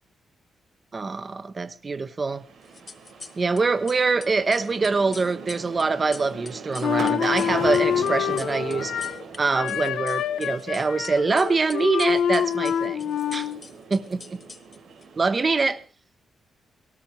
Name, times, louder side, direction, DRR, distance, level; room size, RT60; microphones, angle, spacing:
voice 1, 0.9-2.4 3.4-8.9 9.4-13.5 13.9-14.4 15.2-15.8, right 4 dB, 30° right, 12 dB, 1.1 m, -24 dB
sound 1, 2.3-15.8, right 5 dB, 70° right, 5.5 m, -41 dB
sound 2, 2.7-3.6 3.9-9.4 9.7-11.1 11.4-15.1, left 4 dB, 30° left, 1.0 m, -43 dB
Wind instrument woodwind instrument, 6.8-9.2 9.5-13.6, left 9 dB, 90° left, 0.8 m, -26 dB
19.0 x 18.0 x 3.3 m, 0.34 s
wide cardioid pair, 155°, 0 cm